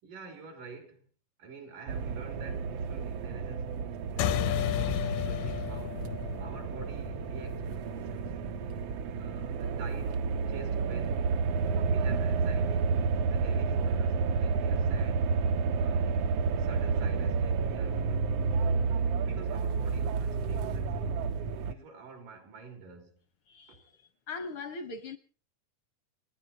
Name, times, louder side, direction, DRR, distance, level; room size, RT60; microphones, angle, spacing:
voice 1, 0.0-1.1 1.4-3.7 4.1-6.1 6.4-8.4 9.2-10.2 10.5-11.3 11.9-12.9 13.3-15.3 15.8-18.4 19.1-21.3 21.6-23.2 23.7-23.9, right 4 dB, 85° right, 5.3 m, -48 dB
sound 1, 1.9-21.7, right 5 dB, 70° right, 1.5 m, -30 dB
sound 2, 4.2-9.0, left 10 dB, 80° left, 2.4 m, -33 dB
voice 2, 23.5-25.2, left 3 dB, 65° left, 1.3 m, -41 dB
30.0 x 10.0 x 4.3 m
omnidirectional pair, 3.7 m